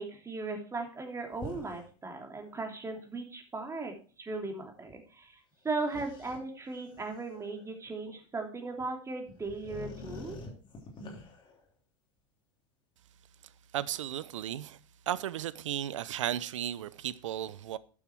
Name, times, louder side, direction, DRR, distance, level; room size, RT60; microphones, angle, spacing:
voice 1, 0.0-3.9 4.2-10.4, right 3 dB, 20° right, 3.1 m, -37 dB
sound 1, 1.3-1.9 2.4-2.5 4.9-5.0 5.9-7.7 8.8-8.9 9.3-11.6, left 2 dB, 30° left, 3.3 m, -46 dB
voice 2, 13.7-14.8 15.1-17.8, right 11 dB, 75° right, 0.7 m, -35 dB
11.5 x 7.3 x 4.6 m
hypercardioid pair, 90°, 16 cm